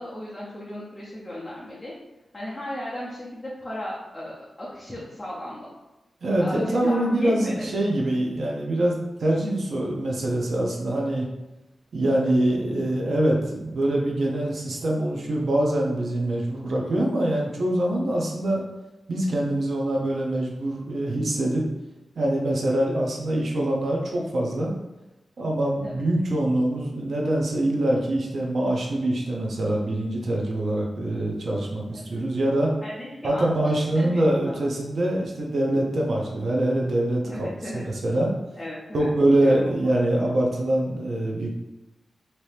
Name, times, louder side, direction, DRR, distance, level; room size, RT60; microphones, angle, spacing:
voice 1, 0.0-1.9 2.3-5.7 6.4-7.7 12.2-12.3 25.8-26.1 31.9-32.2 32.8-34.7 37.2-37.8 38.6-40.0, left 1 dB, 15° left, -8 dB, 0.7 m, -36 dB
voice 2, 6.2-11.3 11.9-18.6 19.1-21.6 22.2-24.7 25.4-32.7 33.2-37.5 37.7-38.3 38.9-41.5, right 1 dB, 60° right, -1 dB, 0.6 m, -24 dB
2.9 x 2.6 x 3.2 m, 1.0 s
wide cardioid pair, 135°, 0 cm